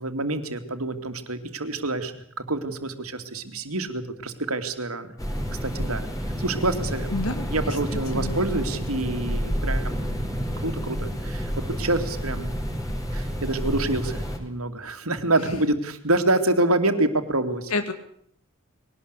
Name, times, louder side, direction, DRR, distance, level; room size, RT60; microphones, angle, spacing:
voice 1, 0.0-5.1 5.6-6.1 6.4-7.1 7.5-10.1 10.6-17.7, right 2 dB, 85° right, 7 dB, 2.7 m, -27 dB
sound 1, 5.2-14.4, equal, 15° left, 4.6 m, -29 dB
voice 2, 7.1-7.8 8.1-8.4 15.4-15.6 17.7-17.9, left 2 dB, 85° left, 8 dB, 1.9 m, -29 dB
22.0 x 18.5 x 8.2 m, 0.65 s
head